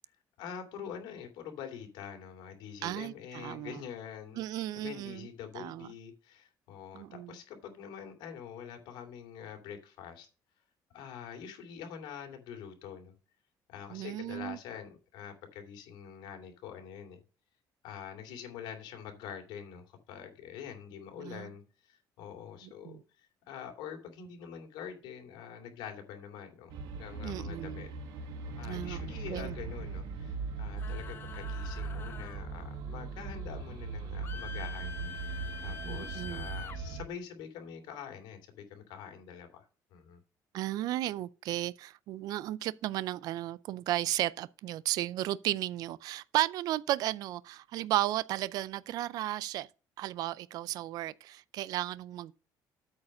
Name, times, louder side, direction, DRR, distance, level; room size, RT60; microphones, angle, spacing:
voice 1, 0.4-4.4 4.7-10.3 10.9-13.1 13.7-17.2 17.8-23.0 23.5-27.9 28.6-34.9 35.6-40.2, left 8 dB, 85° left, 2.8 m, -45 dB
voice 2, 2.8-3.8 4.4-5.3 5.6-5.9 6.9-7.3 13.9-14.6 21.2-21.5 22.8-23.0 27.2-27.8 28.6-29.5 35.8-36.5 40.5-49.7 50.0-52.3, right 14 dB, 60° right, 0.4 m, -34 dB
sound 1, 26.7-37.0, right 4 dB, 80° right, 1.7 m, -39 dB
sound 2, 30.8-32.4 34.2-36.8, left 7 dB, 30° left, 0.7 m, -45 dB
8.5 x 4.8 x 6.3 m
cardioid pair, 175°, 7 cm